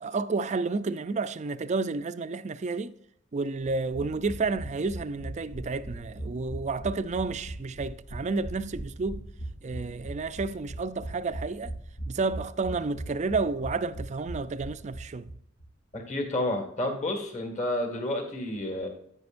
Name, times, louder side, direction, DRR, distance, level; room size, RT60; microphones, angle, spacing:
voice 1, 0.0-3.0 3.3-9.3 9.6-11.7 12.1-15.3, right 3 dB, 35° right, 0.4 m, -31 dB
sound 1, 3.9-15.3 15.6-15.7 15.9-16.0, right 1 dB, 90° left, 3.2 m, -39 dB
voice 2, 15.9-18.9, left 1 dB, 40° left, 1.8 m, -30 dB
9.8 x 9.5 x 2.5 m
head